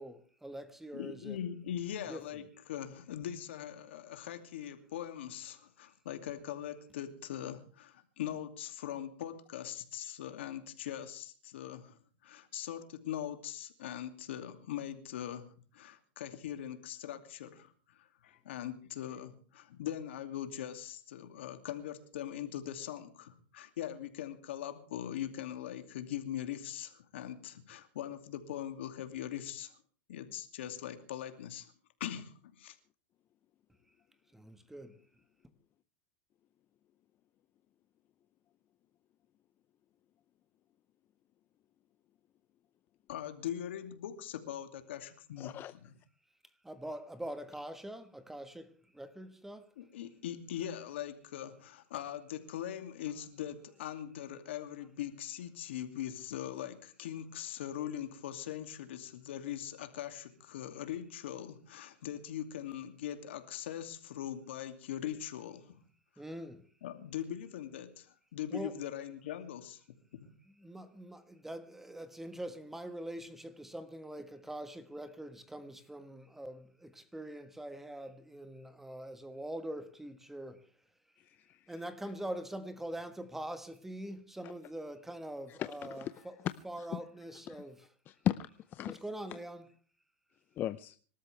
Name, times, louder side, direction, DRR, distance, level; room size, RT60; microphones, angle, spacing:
voice 1, 0.0-1.4 2.1-2.4 34.3-35.0 46.6-49.7 66.2-66.6 68.5-68.8 70.6-80.7 81.7-86.4 86.6-87.9 88.9-89.7, right 1 dB, 5° right, 1.4 m, -44 dB
voice 2, 0.9-29.7 30.1-31.7 32.0-32.8 43.1-45.5 45.8-45.9 49.8-65.8 66.8-69.8 70.1-70.3, left 11 dB, 85° left, 2.6 m, -41 dB
voice 3, 45.4-45.7 81.3-81.6 85.5-85.7 86.0-86.1 86.9-87.0 87.5-87.6 88.1-88.4 88.7-89.0 90.6-91.0, left 12 dB, 35° left, 0.6 m, -35 dB
26.0 x 13.0 x 3.4 m
supercardioid pair, 135°, 6 cm